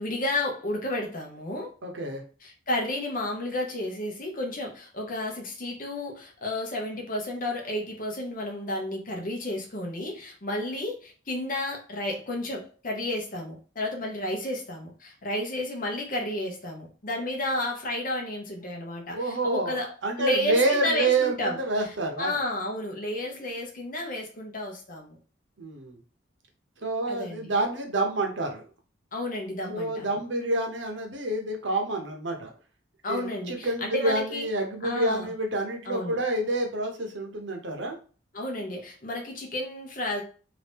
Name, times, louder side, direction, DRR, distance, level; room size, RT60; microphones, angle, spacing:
voice 1, 0.0-1.7 2.4-21.6 22.2-25.2 27.1-27.5 29.1-30.2 33.0-34.5 34.8-35.3 35.9-36.2 38.3-40.2, left 1 dB, 45° left, 0.8 m, -32 dB
voice 2, 1.8-2.2 19.1-22.4 25.6-26.0 26.8-28.7 29.7-32.5 33.1-38.0, right 2 dB, 65° right, 0.8 m, -28 dB
2.9 x 2.5 x 3.4 m
head